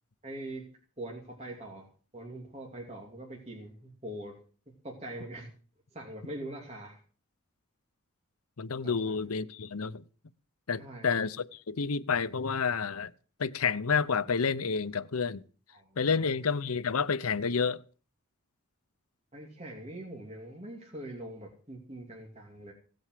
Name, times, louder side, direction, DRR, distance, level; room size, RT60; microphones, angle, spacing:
voice 1, 0.2-0.6 1.0-1.9 2.1-4.4 4.8-5.5 5.9-7.0 8.8-9.1 10.7-11.1 15.7-16.3 19.3-22.7, right 1 dB, 30° right, 2.7 m, -43 dB
voice 2, 8.6-10.0 10.7-13.1 13.4-15.4 16.0-17.8, left 5 dB, 85° left, 0.8 m, -29 dB
17.0 x 7.9 x 7.5 m
head